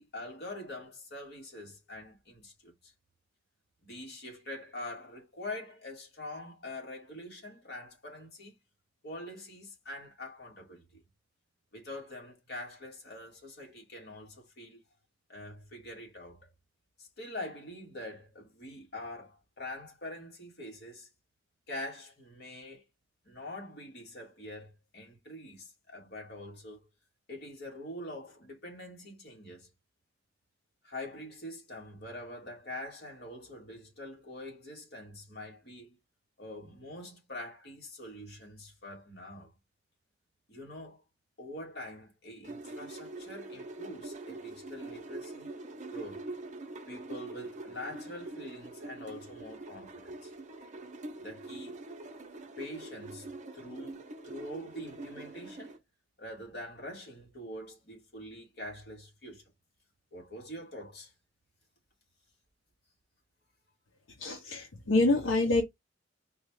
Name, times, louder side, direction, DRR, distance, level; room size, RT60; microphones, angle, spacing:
voice 1, 0.0-2.9 3.8-8.6 9.0-11.0 11.7-14.8 15.3-16.5 17.0-21.1 21.7-22.8 23.3-26.9 27.3-29.7 30.8-36.0 36.4-39.5 40.5-41.0 41.4-45.6 45.9-46.3 46.9-50.3 51.2-51.8 52.6-55.8 56.2-59.4 60.1-61.1, left 1 dB, 60° left, 1.9 m, -44 dB
sound 1, 42.4-55.8, right 2 dB, 40° right, 0.7 m, -44 dB
voice 2, 64.2-65.6, left 2 dB, 85° left, 0.8 m, -26 dB
4.6 x 2.4 x 3.1 m
head